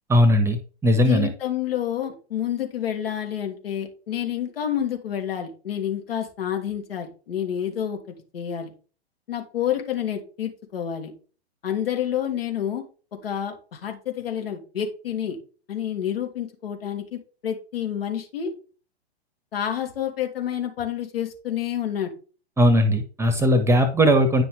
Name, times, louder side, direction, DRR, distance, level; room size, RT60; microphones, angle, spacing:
voice 1, 0.1-1.3 22.6-24.4, equal, 10° right, 8 dB, 1.1 m, -18 dB
voice 2, 1.0-8.0 8.3-8.7 9.3-11.1 11.6-12.8 13.2-15.4 15.7-18.5 19.5-22.1, left 10 dB, 65° left, 3 dB, 2.8 m, -29 dB
9.9 x 6.1 x 3.6 m, 0.36 s
figure-of-eight pair, 110°, 32 cm